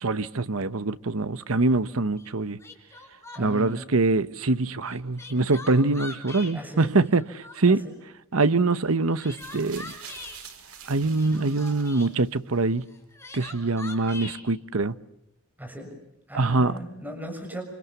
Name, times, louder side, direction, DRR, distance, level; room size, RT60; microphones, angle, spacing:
voice 1, 0.0-2.6 3.4-7.8 8.3-9.9 10.9-12.9 13.3-14.9 16.3-16.8, right 3 dB, 75° right, 1.0 m, -24 dB
Crying sobbing, 2.2-2.3 2.6-3.7 4.9-6.5 7.0-7.8 8.9-10.4 11.1-12.1 12.9-14.4, left 3 dB, 10° left, 4.9 m, -42 dB
voice 2, 3.3-4.0 6.5-6.9 7.6-8.0 15.6-15.9 16.3-17.6, equal, 10° right, 6.8 m, -38 dB
sound 1, 9.3-12.6 13.5-13.6, right 7 dB, 90° right, 5.1 m, -46 dB
28.5 x 27.5 x 7.1 m
head